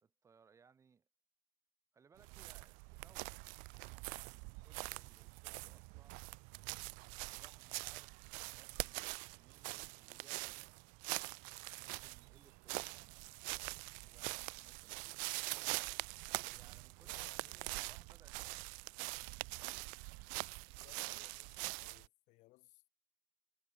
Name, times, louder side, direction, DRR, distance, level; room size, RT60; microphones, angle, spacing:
voice 1, 0.0-1.1 1.9-3.4 4.0-6.2 7.3-10.8 11.8-13.5 14.0-15.3 16.3-18.8, right 6 dB, 20° right, 1.7 m, -68 dB
sound 1, 2.2-22.1, right 35 dB, 75° right, 0.4 m, -44 dB
voice 2, 17.0-17.8 20.8-22.9, left 21 dB, 60° left, 1.1 m, -65 dB
cardioid pair, 150°, 14 cm